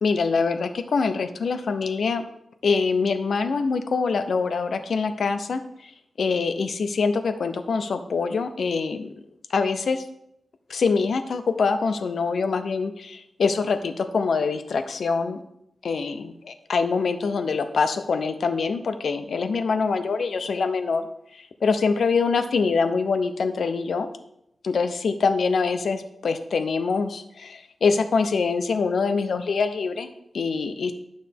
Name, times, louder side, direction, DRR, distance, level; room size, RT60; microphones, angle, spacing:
voice 1, 0.0-2.2 2.6-5.6 6.2-9.1 9.5-10.0 10.7-15.4 15.8-21.1 21.6-24.1 24.6-30.9, left 4 dB, 75° left, 9 dB, 0.8 m, -24 dB
11.5 x 6.4 x 3.6 m, 0.79 s
wide cardioid pair, 80°, 0 cm